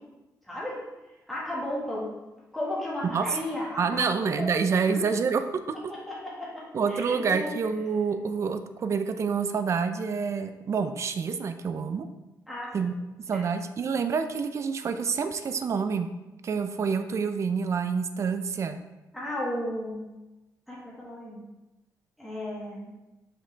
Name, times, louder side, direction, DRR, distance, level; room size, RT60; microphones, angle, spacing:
voice 1, 0.4-0.8 1.3-2.1 2.5-4.6 4.9-5.0 5.9-7.6 12.5-12.7 13.3-13.4 19.1-20.1 20.7-21.4 22.2-22.9, left 1 dB, ahead, -7 dB, 1.7 m, -34 dB
voice 2, 3.8-5.4 6.7-12.1 12.7-12.9 13.3-16.1 16.4-18.8, right 5 dB, 45° right, 8 dB, 0.4 m, -27 dB
5.8 x 5.0 x 3.3 m, 1.0 s
cardioid pair, 135°, 7 cm